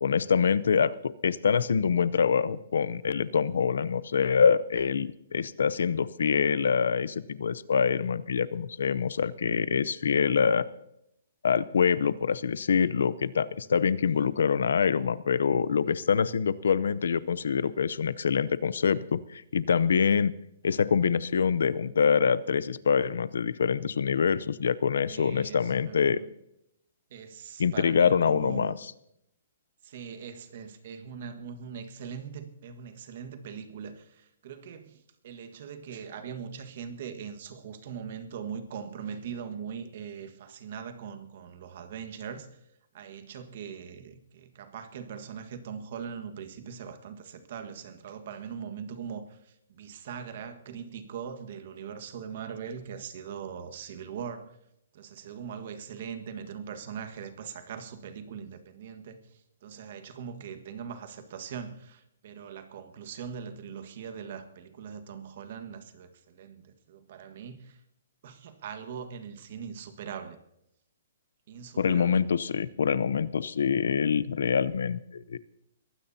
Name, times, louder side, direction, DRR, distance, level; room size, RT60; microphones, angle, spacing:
voice 1, 0.0-10.6 11.4-20.3 20.6-26.2 27.6-28.7 71.8-75.4, left 6 dB, 85° left, 0.7 m, -25 dB
voice 2, 25.1-26.3 27.1-28.8 29.8-42.6 42.9-54.6 54.9-67.8 68.2-70.4 71.5-72.2, right 7 dB, 50° right, 1.5 m, -41 dB
22.0 x 16.0 x 2.8 m
hypercardioid pair, 165°, 0 cm